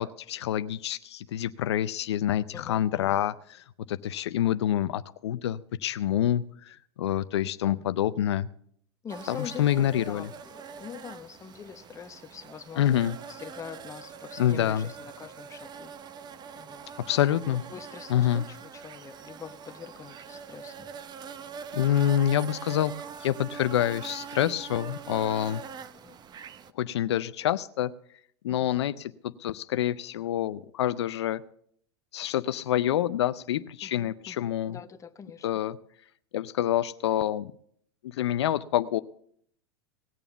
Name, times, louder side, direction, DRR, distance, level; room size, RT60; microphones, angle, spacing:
voice 1, 0.0-3.3 3.9-8.5 9.3-10.3 12.8-13.2 14.4-14.9 17.1-17.6 18.1-18.4 21.7-22.9 23.2-25.6 26.8-27.9 28.4-31.4 32.1-34.8 35.4-35.8 36.3-37.5 38.0-39.0, left 11 dB, 75° left, 13 dB, 0.5 m, -27 dB
voice 2, 2.5-3.2 7.7-7.9 9.0-13.0 13.3-15.9 16.6-16.9 17.5-20.9 25.5-26.2 33.8-35.5, left 7 dB, 20° left, 8 dB, 1.0 m, -44 dB
sound 1, 9.1-26.7, right 6 dB, 30° right, 0.8 m, -43 dB
18.5 x 6.9 x 7.0 m, 0.67 s
hypercardioid pair, 95°, 14 cm